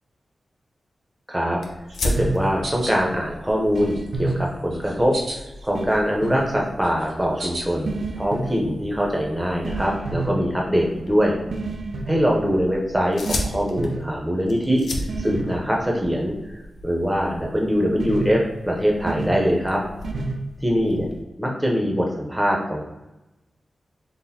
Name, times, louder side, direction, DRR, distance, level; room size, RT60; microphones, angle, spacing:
voice 1, 1.3-1.6 2.0-5.4 5.6-11.4 12.1-14.8 15.2-16.3 16.8-19.8 20.6-21.1 21.4-22.8, equal, 10° right, -1 dB, 0.6 m, -23 dB
sound 1, 1.6-21.2, left 1 dB, 90° left, 0.6 m, -36 dB
sound 2, 1.9-3.0 3.5-4.3 4.7-5.8 6.1-7.8, right 1 dB, 75° right, 0.9 m, -35 dB
sound 3, 2.0-2.4 3.7-4.4 5.7-6.5 7.8-8.6 9.6-10.3 11.5-12.2 13.2-13.5 13.8-14.0 15.1-15.6 18.0-18.3 19.1-19.4 20.0-20.4, right 3 dB, 60° right, 0.4 m, -29 dB
4.0 x 2.1 x 4.0 m, 0.99 s
wide cardioid pair, 150°, 0 cm